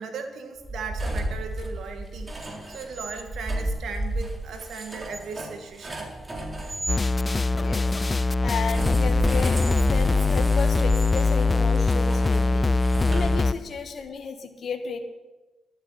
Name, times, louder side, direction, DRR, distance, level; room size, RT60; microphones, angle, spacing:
voice 1, 0.0-6.1, right 5 dB, 75° right, 5 dB, 2.2 m, -37 dB
sound 1, 0.6-7.0 8.6-13.8, right 1 dB, 30° right, 3.5 m, -33 dB
sound 2, 6.9-13.5, left 3 dB, 30° left, 0.5 m, -22 dB
voice 2, 8.4-15.0, left 5 dB, 60° left, 6 dB, 1.4 m, -33 dB
11.5 x 8.8 x 9.9 m, 1.1 s
supercardioid pair, 55°, 0 cm